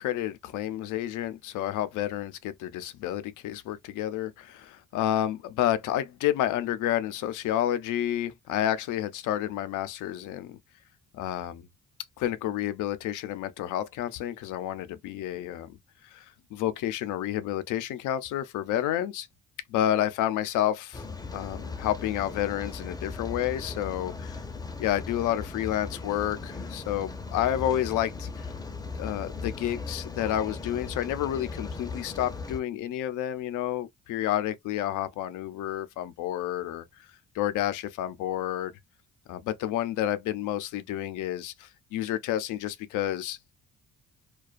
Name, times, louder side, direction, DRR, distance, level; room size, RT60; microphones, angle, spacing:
voice 1, 0.0-10.6 11.1-11.7 12.2-15.8 16.0-19.3 19.7-21.0 21.3-24.4 24.8-28.5 29.0-36.8 37.3-38.7 39.3-43.4, left 12 dB, 85° left, 0.5 m, -30 dB
Rain, 20.9-32.6, left 4 dB, 15° left, 0.5 m, -38 dB
2.4 x 2.2 x 2.4 m
cardioid pair, 90°, 30 cm